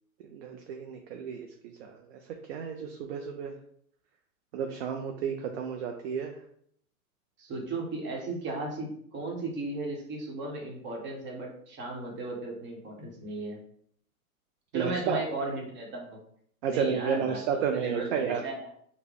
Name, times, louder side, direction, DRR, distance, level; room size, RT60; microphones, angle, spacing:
voice 1, 0.3-3.5 4.5-6.3 14.7-15.2 16.6-18.4, right 7 dB, 45° right, 4 dB, 0.5 m, -32 dB
voice 2, 7.4-13.6 14.7-16.2 16.7-17.4 17.8-18.7, right 2 dB, 25° right, -1 dB, 1.1 m, -35 dB
4.8 x 2.2 x 3.4 m, 0.65 s
hypercardioid pair, 120°, 44 cm